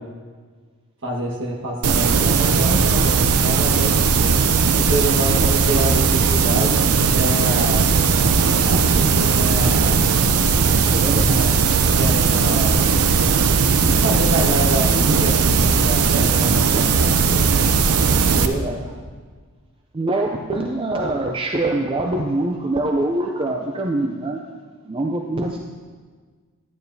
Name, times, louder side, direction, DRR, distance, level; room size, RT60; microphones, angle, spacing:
voice 1, 1.0-4.3 4.8-7.9 8.6-10.0 11.3-11.6 12.0-12.8 13.6-17.7 18.1-18.7, right 1 dB, 55° right, -2 dB, 1.4 m, -27 dB
sound 1, 1.8-18.5, right 5 dB, 80° right, 0.5 m, -17 dB
voice 2, 10.9-11.4 18.6-18.9 19.9-24.4 24.9-25.6, right 2 dB, 25° right, 2 dB, 0.4 m, -24 dB
11.5 x 9.0 x 2.7 m, 1.5 s
head